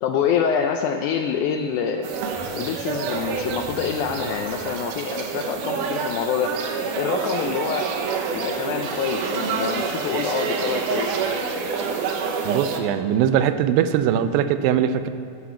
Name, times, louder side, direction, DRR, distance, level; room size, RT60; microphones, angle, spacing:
voice 1, 0.0-2.1 2.5-6.5 7.0-7.9 8.3-11.1, left 7 dB, 80° left, 5 dB, 1.8 m, -26 dB
sound 1, 1.9-5.0 7.5-7.6 8.2-11.3 13.9-14.0, equal, 65° left, 2.5 m, -45 dB
sound 2, 2.0-12.8, right 5 dB, 75° right, 2.3 m, -27 dB
voice 2, 12.5-15.1, right 9 dB, 90° right, 11 dB, 2.3 m, -21 dB
9.9 x 6.5 x 6.9 m, 2.8 s
omnidirectional pair, 4.0 m